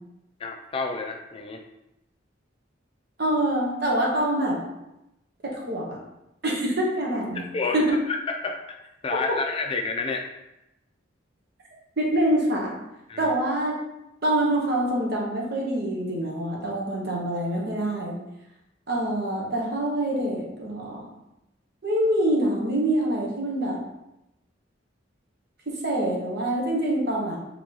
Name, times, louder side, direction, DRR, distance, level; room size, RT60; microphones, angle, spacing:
voice 1, 0.4-1.6 7.3-8.8 9.0-10.3 13.1-13.3, left 4 dB, 30° left, 3 dB, 0.4 m, -30 dB
voice 2, 3.2-4.6 5.4-6.0 6.4-7.4 7.7-7.8 12.0-12.8 13.2-13.7 14.2-18.2 18.9-21.0 21.8-23.8 25.7-27.4, right 1 dB, 55° right, -2 dB, 1.1 m, -25 dB
3.8 x 3.0 x 3.8 m, 0.89 s
head